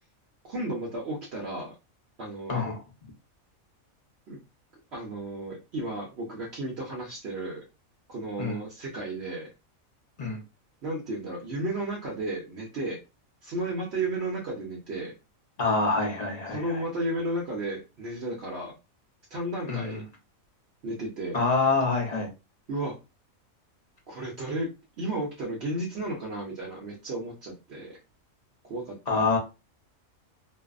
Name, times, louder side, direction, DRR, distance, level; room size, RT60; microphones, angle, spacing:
voice 1, 0.4-1.7 2.2-2.6 4.3-4.4 4.9-7.6 8.1-9.5 10.8-13.0 13.4-15.1 16.5-18.7 19.3-20.0 20.8-21.4 22.7-22.9 24.1-24.7 25.0-28.0 28.6-29.3, right 1 dB, 60° right, -3 dB, 0.9 m, -33 dB
voice 2, 15.6-16.8 19.7-20.0 21.3-22.3 29.1-29.4, left 3 dB, 45° left, 0 dB, 0.5 m, -26 dB
2.6 x 2.0 x 2.3 m, 0.27 s
omnidirectional pair, 1.4 m